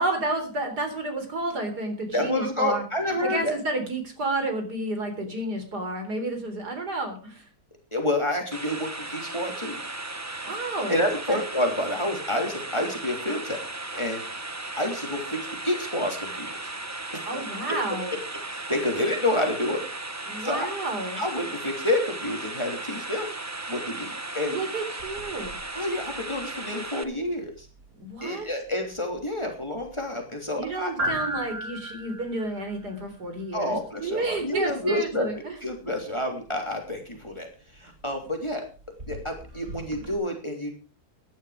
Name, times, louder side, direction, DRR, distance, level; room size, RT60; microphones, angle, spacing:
voice 1, 0.0-2.8 3.2-7.5 10.4-11.0 11.3-11.4 17.3-18.2 20.3-21.2 24.4-25.5 28.0-28.5 30.6-35.5, right 2 dB, 80° right, 6 dB, 4.3 m, -31 dB
voice 2, 2.1-3.5 7.9-9.8 10.9-13.6 13.9-14.2 14.8-16.5 17.1-17.2 17.7-17.8 18.5-19.8 20.4-20.7 21.2-23.3 23.7-24.5 25.7-27.7 28.2-30.9 33.5-37.5 37.8-38.7 39.1-40.7, left 1 dB, 15° left, 2 dB, 3.3 m, -28 dB
sound 1, 8.5-27.0, right 2 dB, 15° right, 0.7 m, -36 dB
sound 2, 25.0-40.1, right 1 dB, 50° right, 3.3 m, -40 dB
15.0 x 11.5 x 5.1 m, 0.35 s
omnidirectional pair, 1.7 m